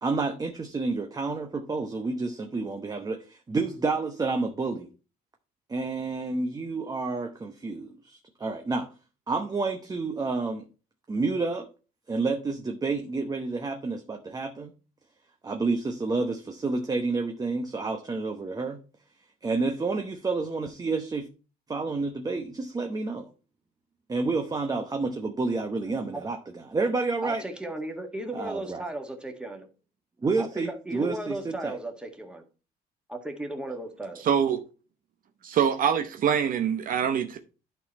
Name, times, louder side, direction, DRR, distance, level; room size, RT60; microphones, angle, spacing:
voice 1, 0.0-4.9 5.7-8.9 9.3-10.7 11.1-11.7 12.1-14.7 15.4-18.8 19.4-21.3 21.7-23.3 24.1-26.4 26.7-27.4 28.3-28.8 30.2-31.8, right 3 dB, 20° right, 0.9 m, -29 dB
voice 2, 25.8-26.2 27.2-29.6 30.4-32.4 33.1-34.2, right 2 dB, 5° right, 1.6 m, -36 dB
voice 3, 34.2-34.6 35.4-37.4, right 8 dB, 55° right, 0.9 m, -24 dB
11.5 x 4.1 x 4.2 m
cardioid pair, 110°, 17 cm